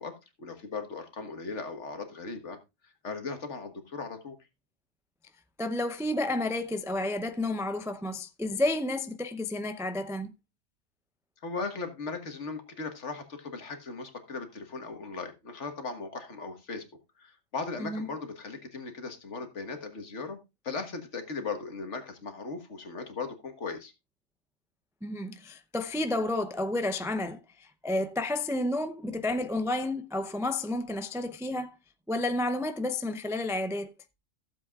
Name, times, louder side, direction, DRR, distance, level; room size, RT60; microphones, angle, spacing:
voice 1, 0.0-2.6 2.8-4.4 11.4-16.9 17.2-20.4 20.6-23.9, left 4 dB, 65° left, 1.8 m, -38 dB
voice 2, 5.6-10.3 17.8-18.1 25.0-27.4 27.8-31.8 32.1-33.9, left 2 dB, 5° right, 0.4 m, -31 dB
15.0 x 7.7 x 2.4 m
omnidirectional pair, 1.3 m